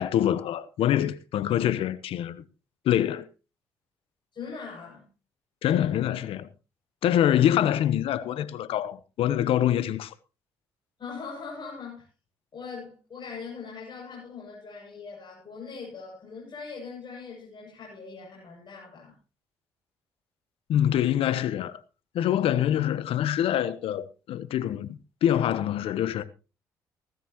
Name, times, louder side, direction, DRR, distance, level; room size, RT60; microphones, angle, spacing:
voice 1, 0.0-2.4 2.8-3.3 5.6-6.4 7.0-10.1 20.7-21.8 22.1-26.2, left 11 dB, 70° left, 1.0 m, -25 dB
voice 2, 4.3-5.1 5.7-6.3 11.0-12.1 12.5-19.2, left 5 dB, 50° left, 7.4 m, -41 dB
16.5 x 14.5 x 3.0 m
hypercardioid pair, 50°, 10 cm